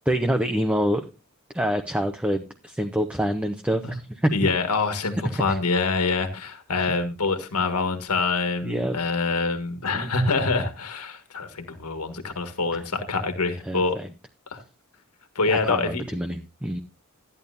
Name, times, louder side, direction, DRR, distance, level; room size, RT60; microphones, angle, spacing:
voice 1, 0.1-1.0 1.5-4.5 5.3-5.6 8.6-9.0 9.9-10.1 13.7-14.1 15.5-16.8, equal, 5° right, 5 dB, 0.8 m, -26 dB
voice 2, 4.3-14.0 14.5-14.6 15.3-16.0, left 4 dB, 90° left, 7 dB, 1.7 m, -25 dB
13.5 x 10.5 x 2.7 m, 0.29 s
head